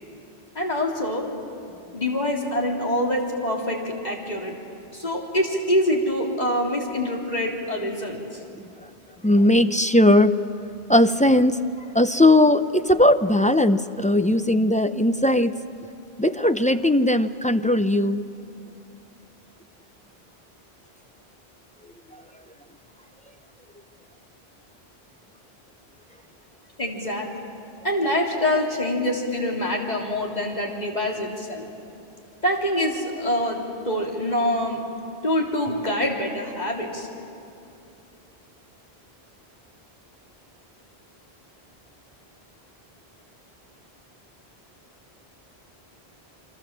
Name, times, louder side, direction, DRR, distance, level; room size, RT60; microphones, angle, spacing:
voice 1, 0.6-1.3 1.9-4.6 4.9-8.4 26.8-27.5 27.8-31.7 32.4-34.8 35.2-37.1, left 1 dB, 40° left, -1 dB, 3.5 m, -25 dB
voice 2, 9.2-10.3 10.9-11.6 11.9-15.5 16.2-18.2, left 1 dB, 10° left, 9 dB, 0.4 m, -18 dB
28.5 x 24.0 x 7.4 m, 2.6 s
omnidirectional pair, 1.1 m